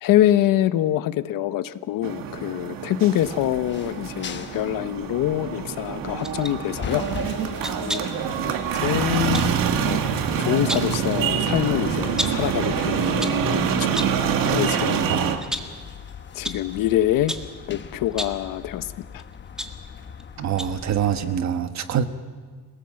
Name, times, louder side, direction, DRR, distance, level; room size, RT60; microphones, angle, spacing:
voice 1, 0.0-7.0 7.8-9.5 9.8-10.0 10.4-13.9 14.4-15.0 16.3-17.4 17.7-18.9 19.1-19.2, left 13 dB, 75° left, 1.0 m, -25 dB
sound 1, 2.0-15.4, right 7 dB, 75° right, 2.0 m, -26 dB
sound 2, 3.2-21.4, left 7 dB, 35° left, 1.1 m, -40 dB
sound 3, 6.2-6.6 7.6-8.2 9.3-9.5 10.4-11.0 12.2-12.5 13.0-13.5 13.9-14.3 14.7-14.9 15.4-15.8 16.4-16.7 17.3-17.6 18.1-18.5 19.2-20.2 20.6-20.9 21.2-21.3, equal, ahead, 1.6 m, -32 dB
voice 2, 15.1-15.5 20.4-22.0, right 8 dB, 55° right, 1.4 m, -25 dB
27.5 x 18.5 x 7.7 m
cardioid pair, 140°, 34 cm